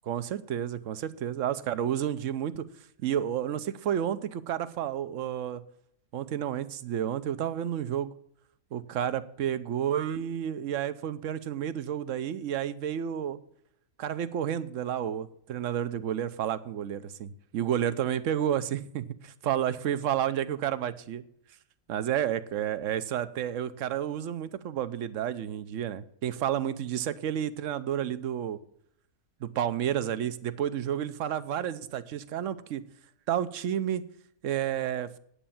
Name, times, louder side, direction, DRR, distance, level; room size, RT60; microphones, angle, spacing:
voice 1, 0.1-2.6 3.0-5.6 6.1-8.1 8.7-13.4 14.0-21.2 21.9-28.6 29.4-32.8 33.3-34.0 34.4-35.2, right 10 dB, 65° right, 14 dB, 1.1 m, -31 dB
10.0 x 8.7 x 7.1 m, 0.68 s
omnidirectional pair, 1.5 m